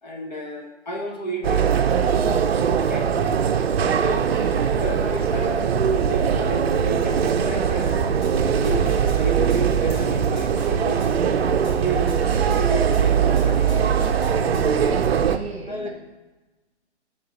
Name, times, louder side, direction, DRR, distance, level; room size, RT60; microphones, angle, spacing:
voice 1, 0.0-1.7 2.7-3.1 3.5-4.3 4.8-8.2 8.6-11.2 11.6-12.1 12.4-14.1 15.7-15.9, right 1 dB, 40° left, 1 dB, 1.0 m, -32 dB
sound 1, 1.4-15.4, right 7 dB, 60° right, 0.6 m, -21 dB
voice 2, 4.3-4.8 14.9-15.9, right 3 dB, 25° right, 0 dB, 1.1 m, -35 dB
sound 2, 8.0-9.2 9.5-12.6 12.9-14.9, equal, 20° left, 1.2 m, -36 dB
9.9 x 3.8 x 4.1 m, 1.1 s
hypercardioid pair, 160°, 35 cm